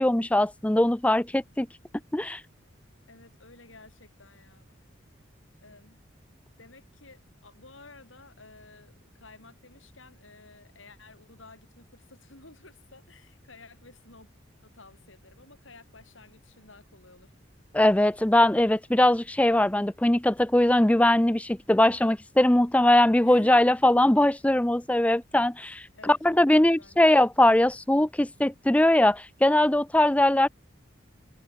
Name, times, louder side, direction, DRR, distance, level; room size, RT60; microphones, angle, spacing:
voice 1, 0.0-1.7 2.1-2.4 17.7-30.5, left 1 dB, 5° left, 0.4 m, -21 dB
voice 2, 3.1-4.8 5.6-6.0 6.6-14.3 14.6-17.3 23.2-23.6 25.9-27.2, left 3 dB, 85° left, 7.1 m, -53 dB
head